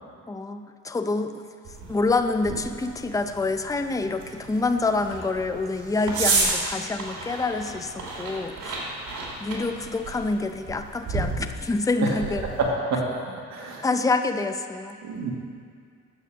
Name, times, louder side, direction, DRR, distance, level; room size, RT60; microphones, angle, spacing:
voice 1, 0.3-1.5 1.9-8.7 9.4-12.4 13.8-15.0, left 3 dB, 10° left, 7 dB, 0.6 m, -27 dB
sound 1, 1.6-12.6, right 3 dB, 80° right, 2.7 m, -32 dB
voice 2, 12.0-13.0 13.5-13.8 15.0-15.3, right 3 dB, 65° right, -2 dB, 1.7 m, -28 dB
9.3 x 7.8 x 6.4 m, 2.2 s
cardioid pair, 90°, 30 cm